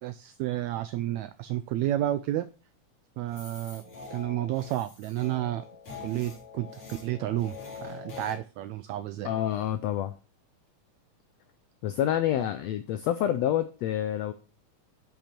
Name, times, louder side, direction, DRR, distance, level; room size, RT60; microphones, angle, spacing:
voice 1, 0.0-2.4 3.2-3.8 4.1-5.6 6.0-9.3, right 13 dB, 90° right, 13 dB, 1.6 m, -31 dB
sound 1, 3.3-8.4, left 6 dB, 45° left, 3.9 m, -44 dB
voice 2, 9.2-10.1 11.8-14.3, left 11 dB, 85° left, 10 dB, 1.5 m, -28 dB
10.5 x 5.3 x 4.4 m, 0.36 s
omnidirectional pair, 3.7 m